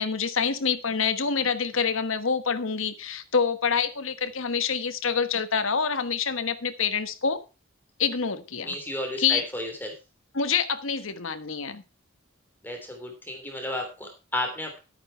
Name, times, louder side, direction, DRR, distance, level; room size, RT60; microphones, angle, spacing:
voice 1, 0.0-7.4 8.0-8.7 9.2-9.4 10.3-11.8, left 6 dB, 65° left, 10 dB, 1.2 m, -26 dB
voice 2, 8.6-9.9 12.6-14.8, left 1 dB, 10° left, 2 dB, 3.1 m, -33 dB
12.0 x 8.7 x 4.5 m, 0.30 s
head